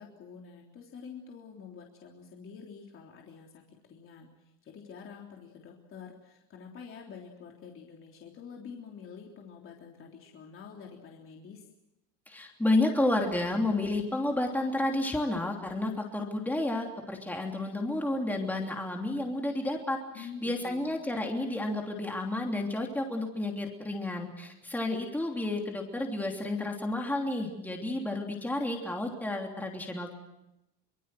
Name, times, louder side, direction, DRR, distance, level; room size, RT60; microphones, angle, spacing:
voice 1, 0.0-4.3 4.6-11.6 20.1-21.1, left 6 dB, 35° left, 0 dB, 3.5 m, -47 dB
voice 2, 12.3-30.1, left 2 dB, 5° left, 1 dB, 3.1 m, -31 dB
25.0 x 22.5 x 7.7 m, 0.90 s
supercardioid pair, 125°, 35 cm